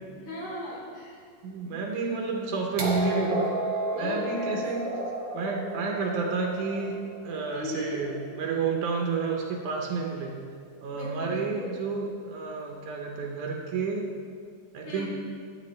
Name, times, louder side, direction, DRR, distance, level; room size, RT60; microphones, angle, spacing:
voice 1, 0.1-1.2 4.0-4.6 7.5-8.0 10.9-11.7 14.9-15.1, left 2 dB, 65° left, -6 dB, 3.9 m, -37 dB
voice 2, 1.4-3.5 3.9-4.8 5.3-7.0 7.2-10.4 10.8-14.1 14.7-15.1, right 4 dB, 80° right, 0 dB, 2.3 m, -30 dB
sound 1, 2.8-8.6 9.8-9.9, right 2 dB, 55° right, 1.9 m, -33 dB
12.5 x 8.8 x 3.2 m, 2.2 s
omnidirectional pair, 3.6 m